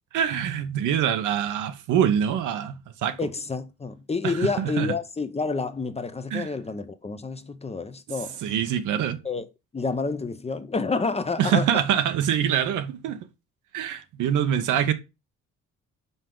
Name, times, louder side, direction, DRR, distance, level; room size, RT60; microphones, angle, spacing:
voice 1, 0.1-3.2 4.2-4.9 6.3-6.5 8.4-9.2 11.4-13.2 13.7-14.9, right 9 dB, 85° right, 0.9 m, -24 dB
voice 2, 3.2-8.4 9.2-9.5 9.7-11.8, left 4 dB, 20° left, 0.6 m, -29 dB
5.5 x 4.6 x 3.7 m
cardioid pair, 90°, 30 cm